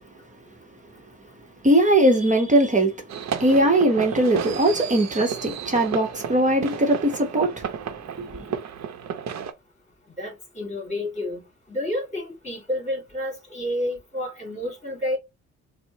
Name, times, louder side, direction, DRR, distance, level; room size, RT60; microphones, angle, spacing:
voice 1, 1.6-2.9 3.4-7.6 8.2-8.5, right 1 dB, 25° right, 0.9 m, -20 dB
sound 1, 3.1-9.5, right 7 dB, 65° right, 0.7 m, -32 dB
voice 2, 10.2-11.4 11.7-15.2, left 1 dB, 25° left, 2.2 m, -30 dB
4.2 x 2.1 x 2.8 m
cardioid pair, 85°, 30 cm